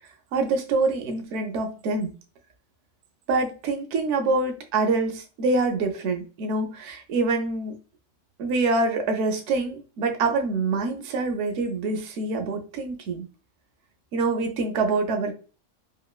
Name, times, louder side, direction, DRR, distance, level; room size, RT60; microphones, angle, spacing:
voice 1, 0.3-2.1 3.3-7.8 8.4-13.3 14.1-15.3, right 3 dB, 70° right, 0.8 m, -25 dB
3.0 x 2.5 x 2.3 m
omnidirectional pair, 1.4 m